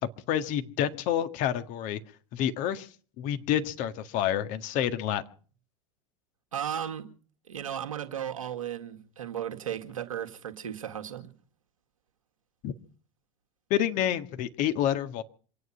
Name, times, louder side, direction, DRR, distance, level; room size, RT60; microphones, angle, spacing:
voice 1, 0.3-2.0 2.3-2.9 3.2-5.2 12.6-12.7 13.7-15.2, left 10 dB, 50° left, 1.7 m, -28 dB
voice 2, 6.5-7.1 7.5-11.3, right 9 dB, 80° right, 1.9 m, -35 dB
27.0 x 9.6 x 5.6 m
hypercardioid pair, 85°, 17 cm